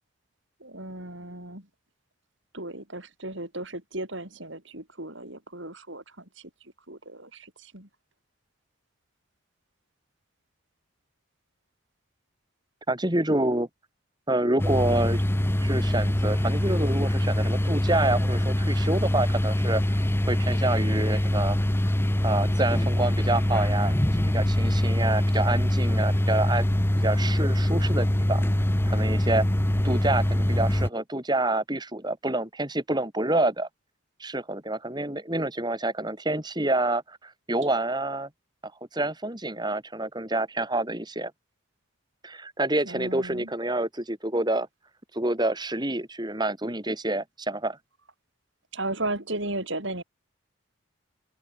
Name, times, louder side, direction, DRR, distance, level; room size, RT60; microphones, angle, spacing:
voice 1, 0.6-1.6 2.5-6.0 6.9-7.9 42.8-43.5 48.7-50.0, right 2 dB, 55° right, 6.3 m, -35 dB
voice 2, 12.9-13.7 14.3-15.2 15.6-21.6 22.2-26.7 27.0-28.4 28.9-29.4 29.8-33.7 34.2-38.3 38.9-41.3 42.2-44.7 45.1-47.8, right 2 dB, 20° right, 2.7 m, -27 dB
sound 1, 14.6-30.9, left 1 dB, 10° left, 0.7 m, -24 dB
open air
head